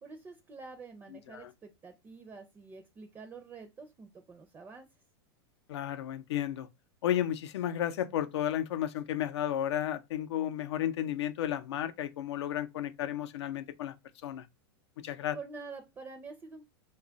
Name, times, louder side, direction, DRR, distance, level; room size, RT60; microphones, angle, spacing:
voice 1, 0.0-4.9 15.3-16.7, right 4 dB, 15° right, 0.5 m, -47 dB
voice 2, 5.7-6.7 7.0-13.9 14.2-14.5 15.0-15.4, left 11 dB, 80° left, 0.5 m, -33 dB
3.0 x 2.3 x 3.8 m
supercardioid pair, 140°, 14 cm